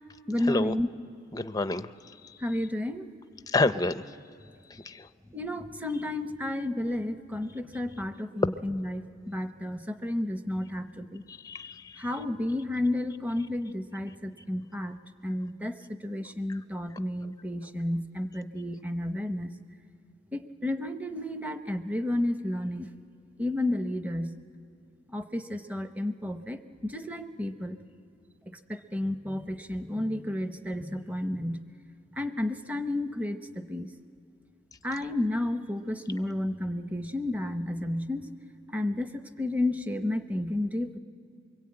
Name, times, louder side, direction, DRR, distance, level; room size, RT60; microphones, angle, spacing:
voice 1, 0.3-0.9 2.4-3.1 5.3-11.2 12.0-15.0 15.2-19.5 20.3-22.9 23.4-24.3 25.1-27.8 28.5-31.6 32.2-33.9 34.8-38.3 38.7-41.0, left 1 dB, 10° right, 9 dB, 0.8 m, -31 dB
voice 2, 1.3-1.9 2.2-2.3 3.5-4.0 4.7-5.1 11.3-12.1 16.5-16.6, left 2 dB, 20° left, 12 dB, 0.5 m, -29 dB
24.5 x 22.5 x 8.7 m, 2.4 s
head